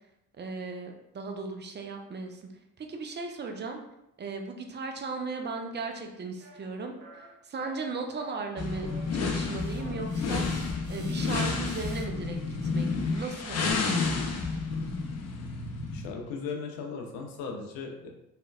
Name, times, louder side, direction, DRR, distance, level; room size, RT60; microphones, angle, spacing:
voice 1, 0.4-2.5 2.8-3.8 4.2-6.9 7.4-10.4 10.9-12.4 12.6-14.0, right 4 dB, 25° right, 3 dB, 0.4 m, -37 dB
sound 1, 5.8-6.0 6.4-6.7 7.0-7.3 7.6-8.4 8.7-9.1, right 4 dB, 85° right, 0.6 m, -50 dB
sound 2, 8.6-16.1, left 4 dB, 35° left, 0.5 m, -30 dB
sound 3, 9.4-14.6, right 2 dB, 55° right, 1.2 m, -53 dB
voice 2, 15.9-18.1, left 5 dB, 80° left, 2 dB, 0.6 m, -37 dB
3.1 x 2.1 x 2.3 m, 0.84 s
hypercardioid pair, 45°, 49 cm